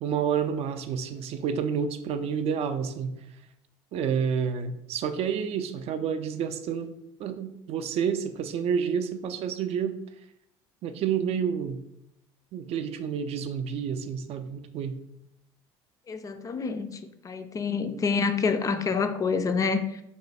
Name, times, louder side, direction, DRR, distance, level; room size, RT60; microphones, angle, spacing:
voice 1, 0.0-3.1 3.9-6.9 7.2-10.0 10.8-11.8 12.5-15.0, right 7 dB, 50° right, 9 dB, 0.4 m, -29 dB
voice 2, 16.1-17.0 17.2-20.0, left 5 dB, 25° left, 9 dB, 0.4 m, -27 dB
3.0 x 2.2 x 4.1 m, 0.81 s
hypercardioid pair, 75°, 13 cm